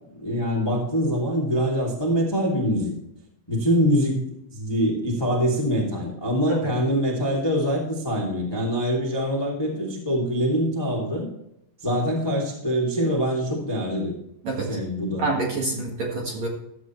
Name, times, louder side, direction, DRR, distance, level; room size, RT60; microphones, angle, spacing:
voice 1, 0.2-2.9 3.5-4.2 4.5-11.2 11.8-14.1 14.7-15.2, equal, 20° left, -3 dB, 0.6 m, -24 dB
voice 2, 14.4-14.8 15.2-16.5, right 3 dB, 55° right, -2 dB, 2.1 m, -27 dB
13.5 x 8.1 x 3.1 m, 0.78 s
omnidirectional pair, 5.3 m